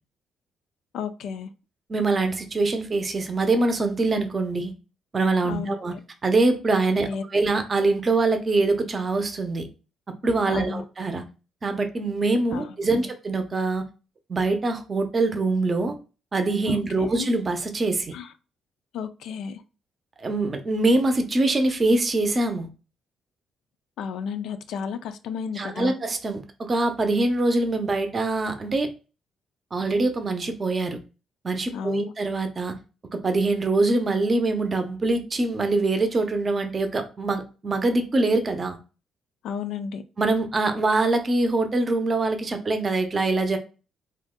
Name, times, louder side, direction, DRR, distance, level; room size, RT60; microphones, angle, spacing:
voice 1, 0.9-1.5 5.4-5.7 7.0-7.2 10.5-10.8 12.5-13.0 16.7-17.3 18.1-18.3 18.9-19.6 24.0-25.9 31.7-32.1 39.4-40.0, left 6 dB, 80° left, 0.3 m, -32 dB
voice 2, 1.9-4.7 5.1-5.9 6.2-9.7 10.2-11.2 11.6-13.8 14.3-16.0 16.3-18.1 20.2-22.7 25.6-28.9 29.7-31.0 31.4-32.7 33.1-38.8 40.2-43.6, right 2 dB, 35° right, 0.6 m, -24 dB
2.6 x 2.1 x 3.6 m
cardioid pair, 90°, 0 cm